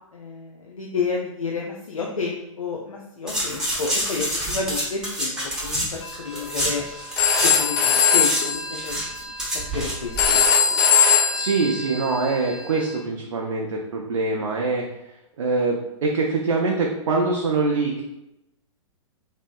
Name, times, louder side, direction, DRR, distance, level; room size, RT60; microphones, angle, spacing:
voice 1, 0.0-5.4 5.6-6.9 7.4-9.0 9.5-10.5, left 4 dB, 90° left, -1 dB, 0.4 m, -30 dB
sound 1, 3.3-7.6 7.9-10.5 10.7-10.8, equal, 5° right, 0.8 m, -28 dB
Telephone, 6.0-12.9, left 6 dB, 35° left, 0.5 m, -22 dB
voice 2, 11.3-14.9 15.4-18.0, right 3 dB, 70° right, -1 dB, 0.5 m, -24 dB
2.7 x 2.7 x 2.3 m, 0.90 s
figure-of-eight pair, 110°, 17 cm